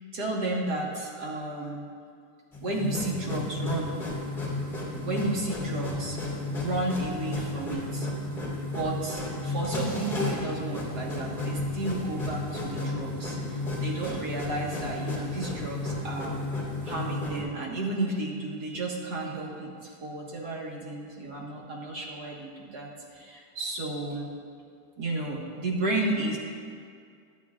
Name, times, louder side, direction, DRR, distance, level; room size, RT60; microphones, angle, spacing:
voice 1, 0.1-1.9 2.6-4.0 5.0-8.1 8.6-16.4 16.9-24.3 25.0-26.4, right 2 dB, 65° right, -3 dB, 2.2 m, -32 dB
sound 1, 2.5-17.4, left 2 dB, 25° left, 2.7 m, -33 dB
18.0 x 11.5 x 2.5 m, 2.2 s
omnidirectional pair, 1.9 m